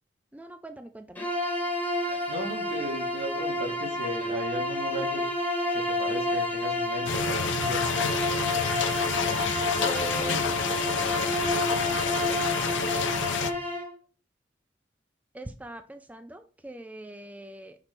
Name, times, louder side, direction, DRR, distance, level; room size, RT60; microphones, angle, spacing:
voice 1, 0.3-1.2 9.8-10.5 15.3-17.8, right 2 dB, 10° right, 7 dB, 0.4 m, -41 dB
Bowed string instrument, 1.1-13.9, left 1 dB, 10° left, 2.0 m, -29 dB
voice 2, 2.3-5.2 5.7-8.2, right 1 dB, 70° right, 2 dB, 1.6 m, -36 dB
sound 1, 7.1-13.5, left 5 dB, 70° left, 0.6 m, -29 dB
5.9 x 3.3 x 5.8 m, 0.37 s
head